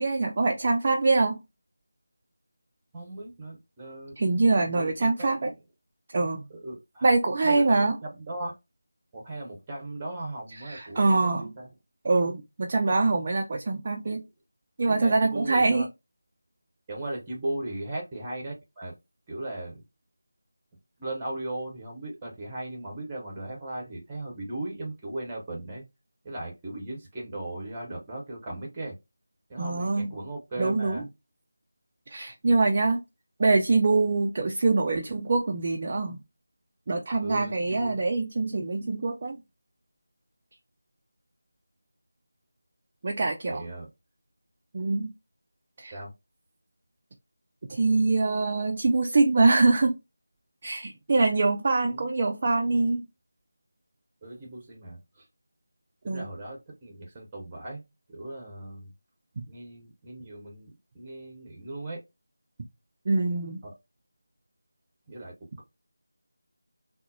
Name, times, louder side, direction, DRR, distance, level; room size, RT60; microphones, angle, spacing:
voice 1, 0.0-1.4 4.2-5.5 6.1-6.4 7.0-8.0 10.7-11.5 12.0-14.2 14.8-15.9 29.6-30.1 30.6-31.0 32.1-33.0 33.4-36.2 36.9-39.4 43.0-43.6 44.7-45.1 45.8-45.9 47.7-50.0 50.6-53.0 56.1-56.3 63.1-63.6, right 3 dB, 30° right, 0.3 m, -24 dB
voice 2, 2.9-4.1 4.6-5.4 6.5-7.1 7.4-8.5 9.1-11.7 14.0-14.2 14.8-15.9 16.9-18.9 19.3-19.8 21.0-25.8 26.2-28.9 29.5-31.0 37.2-38.0 43.5-43.9 45.9-46.1 51.9-52.1 54.2-55.2 56.0-57.8 58.1-58.9 59.5-62.0 63.6-63.7 65.1-65.6, right 1 dB, 15° right, 0.9 m, -37 dB
3.7 x 2.0 x 2.6 m
figure-of-eight pair, 165°, 0 cm